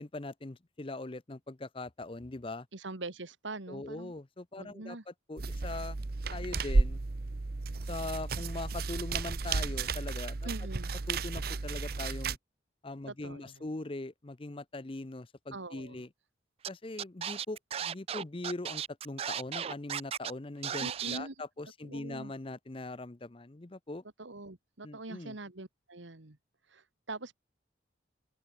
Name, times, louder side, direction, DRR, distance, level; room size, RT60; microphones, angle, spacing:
voice 1, 0.0-2.7 3.7-6.0 6.3-7.0 7.9-10.5 11.1-12.4 12.8-16.1 16.7-24.0 24.8-25.4, left 2 dB, 30° left, 0.7 m, -41 dB
voice 2, 2.7-4.1 4.6-5.0 10.4-10.9 13.1-13.7 15.5-16.0 20.8-21.4 21.8-22.3 24.2-26.4 26.7-27.3, right 2 dB, 80° right, 1.9 m, -43 dB
sound 1, 5.4-12.4, right 3 dB, 55° right, 0.8 m, -33 dB
Scratching (performance technique), 16.6-16.7 17.0-20.3 20.6-21.2, right 9 dB, 30° right, 0.3 m, -35 dB
head